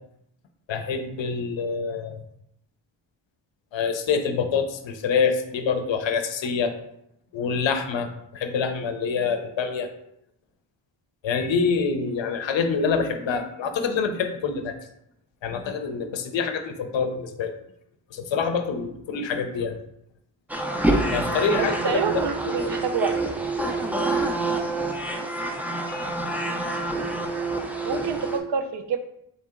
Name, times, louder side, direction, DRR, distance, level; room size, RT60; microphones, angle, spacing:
voice 1, 0.7-2.2 3.7-6.7 7.3-9.9 11.2-14.7 15.4-17.5 18.1-19.8 21.1-22.2 25.9-26.1, left 5 dB, 65° left, 7 dB, 0.6 m, -26 dB
sound 1, 20.5-28.4, right 2 dB, 5° right, 0.3 m, -27 dB
voice 2, 21.5-23.2 27.8-29.0, right 5 dB, 55° right, 7 dB, 0.5 m, -27 dB
4.1 x 2.7 x 3.6 m, 0.76 s
wide cardioid pair, 110°, 50 cm